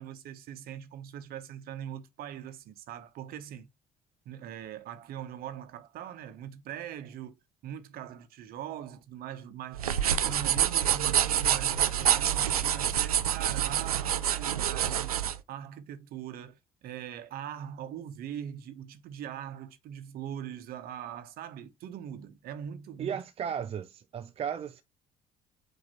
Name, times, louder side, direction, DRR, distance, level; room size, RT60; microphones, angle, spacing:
voice 1, 0.0-3.7 4.2-7.3 7.6-15.1 15.5-23.2, right 9 dB, 55° right, 1.1 m, -41 dB
sound 1, 9.7-15.4, right 10 dB, 85° right, 0.4 m, -27 dB
voice 2, 23.0-24.8, right 8 dB, 35° right, 0.5 m, -35 dB
8.6 x 3.0 x 4.2 m
figure-of-eight pair, 50°, 18 cm